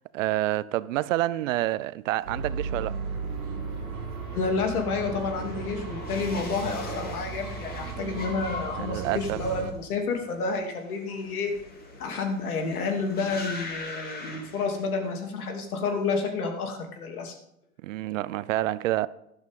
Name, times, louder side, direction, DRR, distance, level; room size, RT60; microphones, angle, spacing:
voice 1, 0.0-3.0 8.0-8.5 8.7-9.4 17.8-19.1, right 15 dB, 60° right, 0.6 m, -28 dB
sound 1, 2.2-15.3 15.6-16.1, left 2 dB, 20° left, 2.8 m, -42 dB
sound 2, 2.2-9.7, right 5 dB, 75° right, 1.9 m, -36 dB
voice 2, 4.3-11.5 12.0-17.4, left 4 dB, 80° left, 2.9 m, -30 dB
12.5 x 11.5 x 3.7 m
hypercardioid pair, 120°, 44 cm